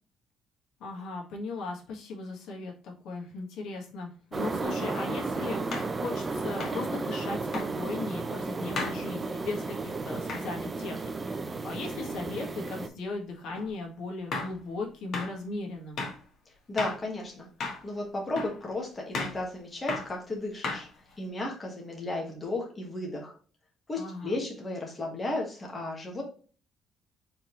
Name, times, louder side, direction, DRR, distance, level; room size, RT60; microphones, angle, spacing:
voice 1, 0.8-16.0 24.0-24.4, left 3 dB, 75° left, 0 dB, 1.6 m, -37 dB
sound 1, 4.3-12.9, right 3 dB, 20° right, 0.4 m, -33 dB
sound 2, 4.6-4.8 5.7-6.0 6.6-6.8 7.5-7.7 8.8-9.0 10.3-10.5 13.6-13.7 14.3-14.6 15.1-15.3 16.0-16.2 16.8-17.0 17.6-17.9 18.4-18.6 19.1-19.4 19.9-20.1 20.6-21.1, left 3 dB, 50° left, 1.4 m, -34 dB
voice 2, 16.7-20.9 21.2-23.3 23.9-26.2, left 2 dB, 15° left, -1 dB, 1.4 m, -34 dB
4.6 x 3.8 x 3.0 m, 0.40 s
cardioid pair, 160°, 0 cm